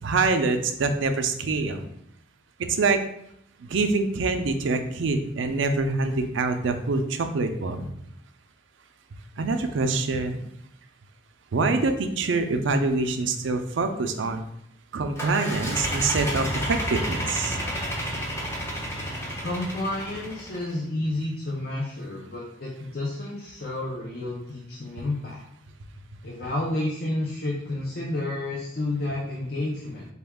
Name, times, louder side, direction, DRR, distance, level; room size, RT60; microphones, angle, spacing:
voice 1, 0.0-1.9 2.7-3.0 3.6-7.8 9.4-10.4 11.5-14.4 14.9-17.6, right 3 dB, 75° right, 7 dB, 0.4 m, -25 dB
sound 1, 15.2-20.7, equal, 15° left, 0.6 m, -31 dB
voice 2, 19.4-25.4 26.2-30.1, left 2 dB, 50° left, -2 dB, 0.6 m, -30 dB
4.3 x 2.3 x 3.5 m, 0.73 s
head